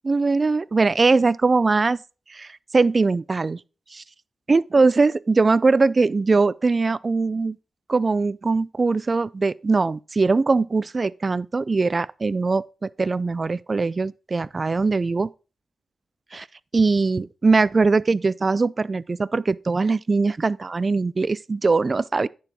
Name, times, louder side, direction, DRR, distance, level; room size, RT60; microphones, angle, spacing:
voice 1, 0.0-2.0 2.3-3.6 3.9-4.0 4.5-7.6 7.9-15.3 16.3-16.5 16.7-22.3, right 3 dB, 40° right, 0.4 m, -21 dB
10.5 x 4.7 x 5.2 m
cardioid pair, 60°, 0 cm